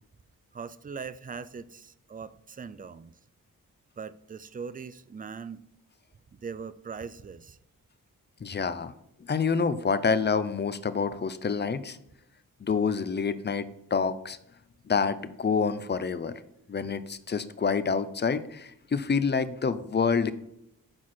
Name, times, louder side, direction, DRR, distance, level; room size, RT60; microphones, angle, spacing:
voice 1, 0.5-3.2 4.0-5.6 6.3-7.6, right 5 dB, 25° right, 0.4 m, -40 dB
voice 2, 8.4-8.9 9.3-12.0 12.6-14.4 14.9-16.3 16.7-20.3, left 5 dB, 30° left, 0.5 m, -27 dB
6.0 x 4.6 x 4.3 m
cardioid pair, 45°, 36 cm